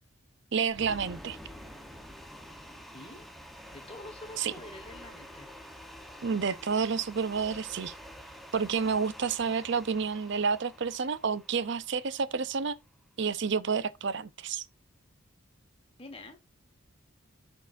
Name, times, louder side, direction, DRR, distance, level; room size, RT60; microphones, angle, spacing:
voice 1, 0.5-1.4 4.4-4.5 6.2-7.9 8.5-12.8 13.2-14.6, right 5 dB, 55° right, 0.5 m, -30 dB
sound 1, 0.7-12.8, equal, ahead, 0.9 m, -48 dB
voice 2, 2.9-3.2 3.7-5.5 16.0-16.4, left 2 dB, 25° left, 1.3 m, -46 dB
13.0 x 4.6 x 2.5 m
head